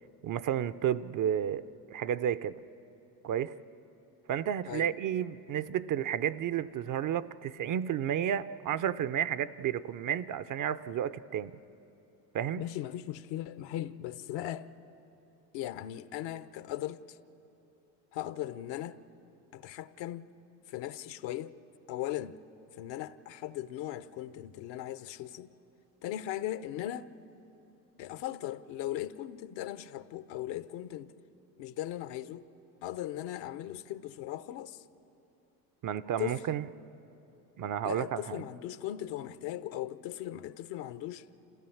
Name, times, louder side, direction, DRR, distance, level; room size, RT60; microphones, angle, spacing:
voice 1, 0.2-2.6 3.2-3.5 4.3-11.5 12.3-12.6 35.8-36.6 37.6-38.4, right 9 dB, 40° right, 0.6 m, -32 dB
voice 2, 12.6-14.7 15.5-17.2 18.1-19.0 19.5-20.3 20.7-21.6 21.9-22.4 22.8-25.5 26.0-27.1 28.0-31.1 31.6-32.5 32.8-34.8 36.2-36.4 37.8-41.3, left 13 dB, 60° left, 0.8 m, -38 dB
27.0 x 16.0 x 7.2 m
hypercardioid pair, 75°, 50 cm